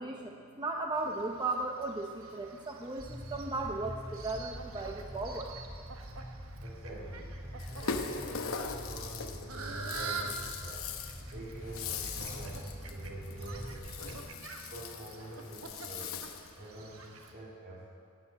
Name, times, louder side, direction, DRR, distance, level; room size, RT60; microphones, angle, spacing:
voice 1, 0.0-5.5, right 2 dB, 20° right, 2 dB, 0.6 m, -36 dB
Fowl, 0.9-17.3, right 4 dB, 75° right, 1.2 m, -47 dB
sound 1, 3.0-14.2, equal, 5° right, 2.8 m, -45 dB
voice 2, 6.6-7.4 7.7-10.9 11.3-14.2 14.7-16.2 16.5-17.9, right 1 dB, 50° right, -6 dB, 2.4 m, -46 dB
Rattle (instrument), 7.6-16.6, left 5 dB, 70° left, 0.9 m, -41 dB
12.5 x 8.7 x 8.4 m, 2.3 s
head